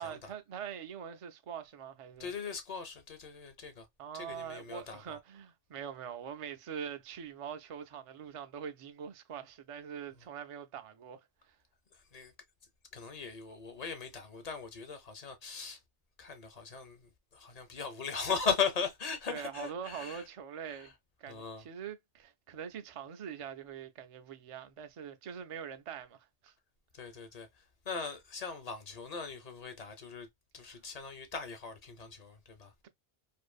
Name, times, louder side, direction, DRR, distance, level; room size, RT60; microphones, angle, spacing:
voice 1, 0.0-2.3 4.0-11.2 19.3-20.9 21.2-26.5, right 8 dB, 60° right, 0.3 m, -43 dB
voice 2, 2.2-3.9 4.1-5.2 11.9-12.3 12.9-15.8 16.2-20.3 20.7-20.9 21.3-21.7 26.9-30.3 30.5-32.7, left 5 dB, 45° left, 0.6 m, -39 dB
2.6 x 2.5 x 2.3 m
omnidirectional pair, 1.1 m